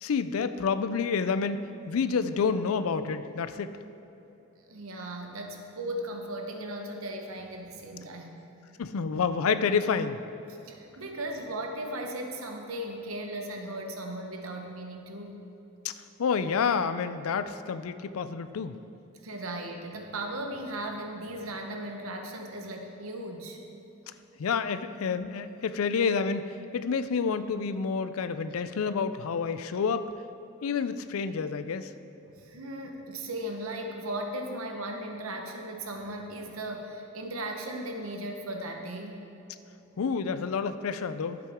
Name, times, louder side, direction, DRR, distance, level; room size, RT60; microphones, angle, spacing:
voice 1, 0.0-1.6 1.9-3.7 8.8-10.2 15.8-15.9 16.2-18.7 24.4-26.4 26.7-30.1 30.6-31.9 40.0-41.4, left 5 dB, 90° left, 12 dB, 0.4 m, -28 dB
voice 2, 4.7-8.4 10.6-15.4 19.2-23.6 32.3-39.2, right 1 dB, 85° right, 3 dB, 1.1 m, -37 dB
11.5 x 7.8 x 3.6 m, 3.0 s
head